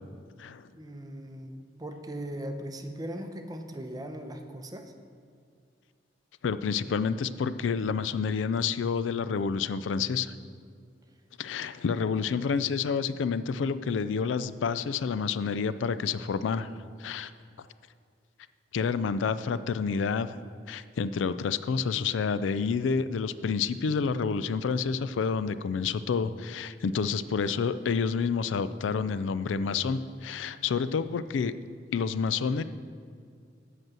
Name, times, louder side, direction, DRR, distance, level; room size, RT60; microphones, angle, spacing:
voice 1, 0.7-4.9, right 1 dB, 20° right, 6 dB, 0.7 m, -39 dB
voice 2, 6.4-10.3 11.4-16.7 17.0-17.3 18.7-20.4 20.7-31.5 31.9-32.6, left 5 dB, 90° left, 14 dB, 0.4 m, -29 dB
7.9 x 6.0 x 7.5 m, 2.2 s
head